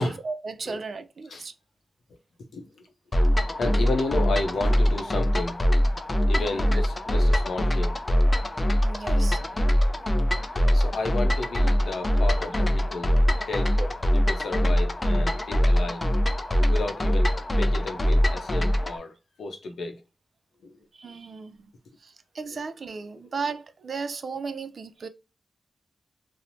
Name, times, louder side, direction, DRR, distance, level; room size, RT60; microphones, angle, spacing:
voice 1, 0.0-1.5 6.4-6.8 8.8-9.4 13.8-13.9 20.9-21.7 22.0-25.1, right 4 dB, 55° right, 0.3 m, -35 dB
sound 1, 3.1-19.0, equal, 25° left, 0.3 m, -23 dB
voice 2, 3.6-5.6 6.3-8.0 10.7-13.2 13.5-13.8 14.3-16.1 16.7-20.0 20.6-20.7, left 2 dB, 85° left, 0.6 m, -32 dB
3.0 x 2.0 x 2.6 m
wide cardioid pair, 130°, 0 cm